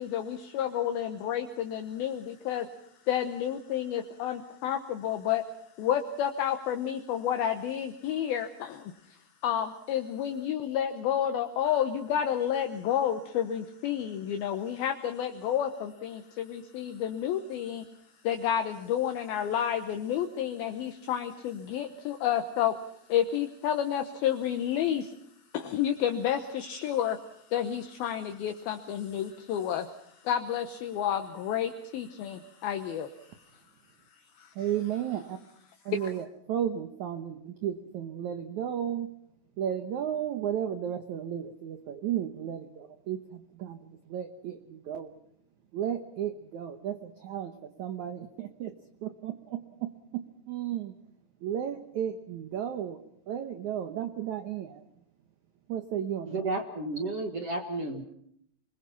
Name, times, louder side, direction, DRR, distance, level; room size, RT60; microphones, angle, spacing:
voice 1, 0.0-2.7 3.1-5.4 5.8-8.9 9.4-17.9 18.2-22.7 23.1-25.1 25.5-27.2 27.5-29.9 30.2-33.4 34.4-34.5 36.0-36.1, left 10 dB, 70° left, 6 dB, 2.7 m, -30 dB
voice 2, 34.5-35.4 35.8-39.1 39.6-45.1 45.7-48.7 49.0-51.0 51.4-53.0 53.3-54.8 55.7-56.4, right 10 dB, 80° right, 8 dB, 1.7 m, -34 dB
voice 3, 56.3-58.0, right 2 dB, 50° right, 4 dB, 1.9 m, -32 dB
29.0 x 21.0 x 5.8 m, 0.71 s
omnidirectional pair, 4.9 m